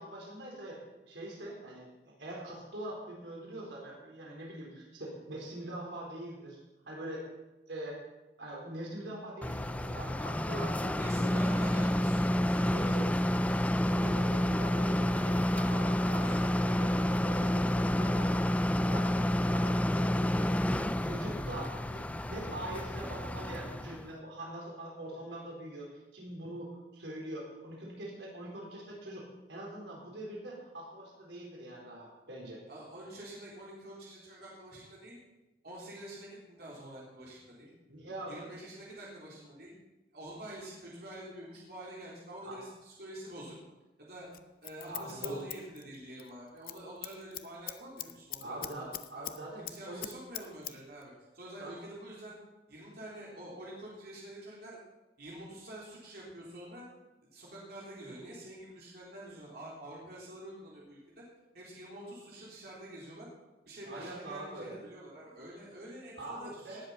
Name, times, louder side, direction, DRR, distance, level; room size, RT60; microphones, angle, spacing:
voice 1, 0.0-1.9 2.2-6.6 6.8-7.3 7.7-8.0 8.4-11.4 12.7-13.1 13.8-18.4 18.7-32.6 37.9-38.5 42.4-42.6 44.9-45.4 48.4-50.1 51.6-51.7 63.8-64.8 66.2-66.8, right 1 dB, 90° right, -2 dB, 4.3 m, -43 dB
sound 1, 9.4-24.1, left 1 dB, 10° left, 0.4 m, -29 dB
voice 2, 10.9-13.7 32.7-35.2 35.6-37.7 38.3-39.7 40.1-43.6 44.0-44.3 44.6-49.2 49.6-52.4 52.7-54.8 55.2-56.8 57.3-61.2 61.5-63.3 63.6-66.9, right 1 dB, 60° right, -5 dB, 3.8 m, -47 dB
sound 2, 15.1-17.2, left 1 dB, 30° left, 4.8 m, -51 dB
Scissors, 44.3-46.3 46.6-46.8 47.0-49.4 49.6-50.7 51.0-51.1, left 13 dB, 55° left, 0.7 m, -41 dB
18.5 x 8.0 x 5.7 m, 1.1 s
head